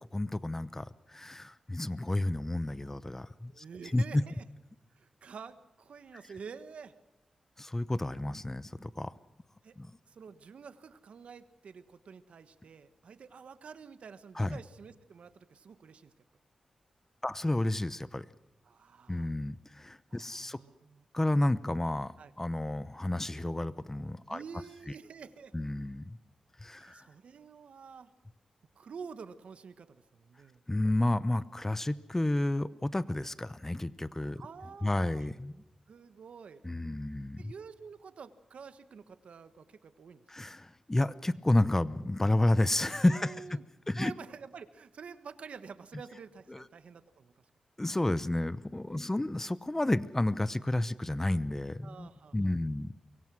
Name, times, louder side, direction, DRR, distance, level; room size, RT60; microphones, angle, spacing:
voice 1, 0.0-3.6 3.9-4.0 7.6-9.1 9.8-10.0 14.3-14.6 17.2-18.3 19.1-20.6 21.1-24.4 25.5-26.2 26.6-27.1 30.7-34.4 34.8-35.6 36.6-37.5 40.3-43.4 43.9-44.1 46.5-46.6 47.8-52.9, left 1 dB, 20° left, 17 dB, 0.9 m, -31 dB
voice 2, 3.5-4.4 4.9-6.9 9.6-9.8 10.1-16.1 18.6-19.3 20.1-21.0 22.2-22.3 24.3-25.5 26.7-28.1 28.7-30.6 34.3-35.3 35.9-36.6 37.4-40.3 43.1-43.6 44.0-47.4 48.8-49.1 51.8-52.5, right 6 dB, 75° right, 13 dB, 1.3 m, -48 dB
24.5 x 23.0 x 6.2 m, 1.0 s
cardioid pair, 70°, 2 cm